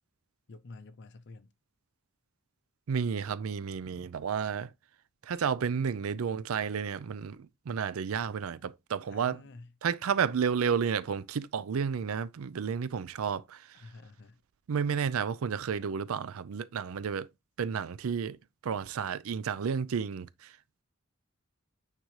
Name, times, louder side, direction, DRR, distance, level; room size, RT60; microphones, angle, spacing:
voice 1, 0.5-1.5 5.9-6.0 9.0-9.7 13.7-14.4, left 3 dB, 60° left, 0.6 m, -49 dB
voice 2, 2.9-4.7 5.3-9.4 9.8-13.6 14.7-17.3 17.6-18.4 18.6-20.3, right 6 dB, 90° right, 0.4 m, -31 dB
9.1 x 3.8 x 3.1 m
head